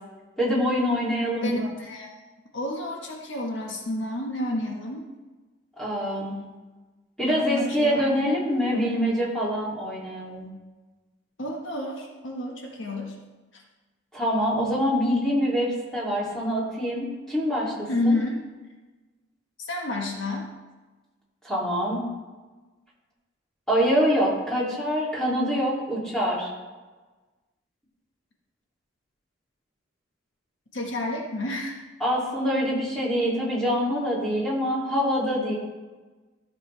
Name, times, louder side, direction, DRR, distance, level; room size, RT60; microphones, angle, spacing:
voice 1, 0.4-1.7 5.8-6.4 7.2-10.5 14.1-18.2 21.4-22.0 23.7-26.5 32.0-35.5, equal, 5° left, -7 dB, 2.8 m, -25 dB
voice 2, 1.4-2.1 2.5-5.1 7.3-8.3 11.4-13.1 13.5-13.6 17.9-18.4 19.6-20.5 30.7-31.8, left 2 dB, 75° left, 0 dB, 1.5 m, -30 dB
13.5 x 7.1 x 3.4 m, 1.2 s
head